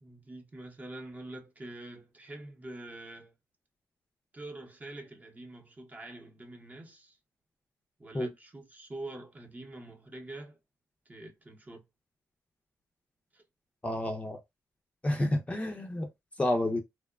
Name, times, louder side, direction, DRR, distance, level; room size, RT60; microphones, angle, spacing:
voice 1, 0.0-3.3 4.3-7.2 8.0-10.6 11.1-11.8 13.3-13.4, right 2 dB, 25° right, 0.7 m, -45 dB
voice 2, 13.8-14.4 15.0-16.1 16.4-16.8, left 1 dB, 20° left, 0.5 m, -29 dB
2.8 x 2.1 x 2.3 m
cardioid pair, 100°, 7 cm